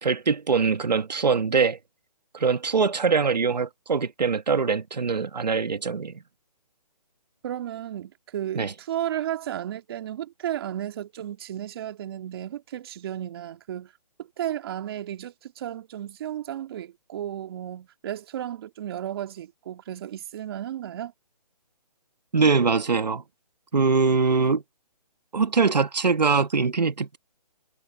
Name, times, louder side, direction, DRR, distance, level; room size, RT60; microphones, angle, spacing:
voice 1, 0.0-1.8 2.3-6.1 8.5-8.7 22.3-23.2 23.7-24.6 25.3-27.2, right 5 dB, 90° right, 1.7 m, -23 dB
voice 2, 7.4-13.9 14.4-21.1, right 11 dB, 35° right, 2.5 m, -33 dB
hypercardioid pair, 160°, 21 cm